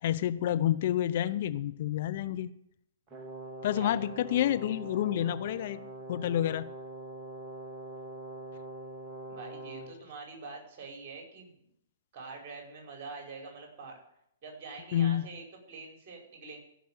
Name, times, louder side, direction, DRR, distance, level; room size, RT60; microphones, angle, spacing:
voice 1, 0.0-2.5 3.6-5.8 6.1-6.7 14.9-15.3, left 11 dB, 50° left, 13 dB, 0.6 m, -29 dB
Brass instrument, 3.1-10.0, right 2 dB, 20° right, 2.4 m, -43 dB
voice 2, 9.3-11.6 12.1-14.0 14.4-16.6, right 4 dB, 40° right, 2 dB, 5.3 m, -45 dB
16.0 x 6.1 x 9.0 m, 0.76 s
hypercardioid pair, 120°, 0 cm